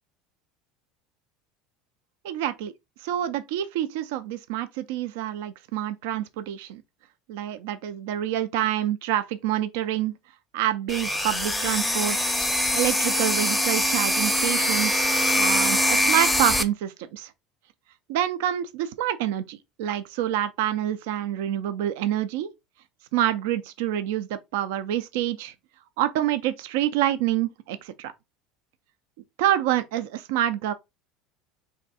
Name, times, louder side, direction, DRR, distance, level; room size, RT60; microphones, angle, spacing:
voice 1, 2.2-2.7 3.0-6.8 7.3-10.1 10.5-12.3 12.7-17.3 18.1-22.5 23.1-25.5 26.0-28.1 29.4-30.7, right 12 dB, 80° right, 0.4 m, -27 dB
sound 1, 10.9-16.6, left 1 dB, 5° left, 0.5 m, -23 dB
3.2 x 2.6 x 3.9 m
supercardioid pair, 130°, 0 cm